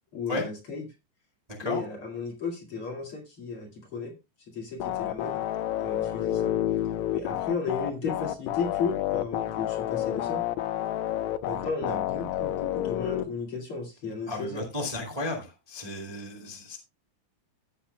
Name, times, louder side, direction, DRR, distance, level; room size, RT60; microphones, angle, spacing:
voice 1, 0.1-0.8 1.6-4.2 4.5-5.4 5.8-6.5 7.1-10.4 11.4-14.6, left 4 dB, 40° left, 1 dB, 2.8 m, -34 dB
sound 1, 4.8-13.2, left 13 dB, 85° left, 2.5 m, -29 dB
voice 2, 14.3-16.8, left 2 dB, 15° right, 1 dB, 1.7 m, -33 dB
16.0 x 8.5 x 2.2 m, 0.24 s
omnidirectional pair, 4.2 m